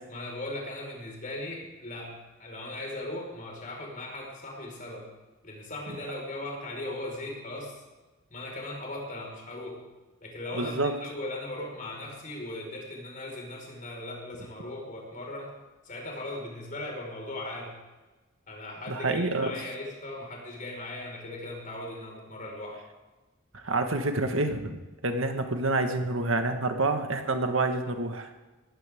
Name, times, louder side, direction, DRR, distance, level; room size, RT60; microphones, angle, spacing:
voice 1, 0.1-5.1 5.4-7.8 8.3-9.8 10.2-15.5 15.8-17.8 18.5-22.8, left 1 dB, 40° left, -1 dB, 5.2 m, -38 dB
voice 2, 10.5-11.0 18.9-19.5 23.5-28.3, right 2 dB, 80° right, 6 dB, 1.7 m, -28 dB
19.0 x 15.5 x 3.8 m, 1.2 s
head